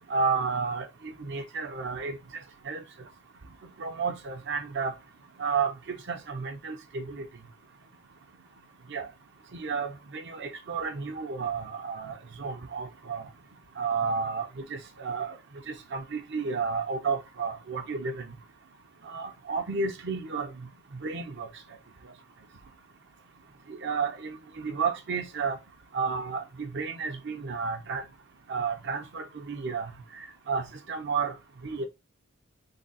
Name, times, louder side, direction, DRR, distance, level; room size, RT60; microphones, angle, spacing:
voice 1, 0.1-2.2 2.7-2.8 3.8-4.9 5.4-7.3 8.9-9.1 9.5-13.3 13.8-15.4 15.7-18.3 19.1-21.5 23.7-25.6 25.9-28.0 28.5-29.9 30.5-31.3 31.6-31.9, right 5 dB, 55° right, 0.7 m, -32 dB
3.7 x 2.2 x 4.0 m
head